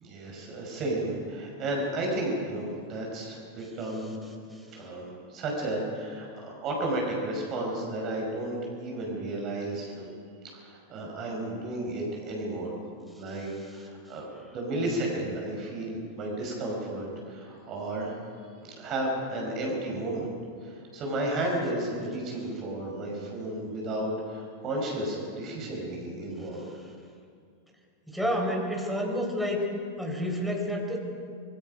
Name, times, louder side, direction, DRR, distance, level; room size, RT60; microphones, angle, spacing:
voice 1, 0.0-4.2 4.7-10.1 10.5-12.7 13.2-14.3 14.5-18.2 18.6-20.3 20.6-26.6, right 1 dB, 35° right, -1 dB, 5.5 m, -33 dB
voice 2, 13.3-13.8 26.5-26.7 28.1-29.6 30.0-31.0, equal, ahead, 1 dB, 4.1 m, -30 dB
25.5 x 21.5 x 5.3 m, 2.2 s
figure-of-eight pair, 90°, 0 cm